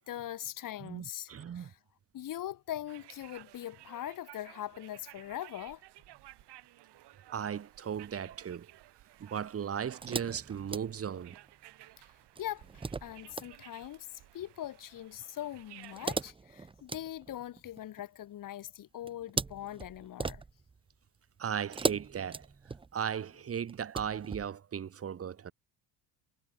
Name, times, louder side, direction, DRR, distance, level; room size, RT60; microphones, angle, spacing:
voice 1, 0.1-1.8 2.1-5.8 12.0-12.1 12.4-14.1 14.3-20.4, left 12 dB, 50° left, 1.5 m, -41 dB
voice 2, 0.8-1.7 7.3-8.7 9.2-11.4 21.4-22.5 22.9-25.5, right 8 dB, 35° right, 1.5 m, -37 dB
sound 1, 2.9-16.3, right 15 dB, 70° right, 3.0 m, -56 dB
sound 2, 10.0-11.5 12.4-13.5 15.8-18.0 19.1-20.8 21.7-23.1 23.7-24.5, right 4 dB, 15° right, 0.6 m, -38 dB
cardioid pair, 140°, 42 cm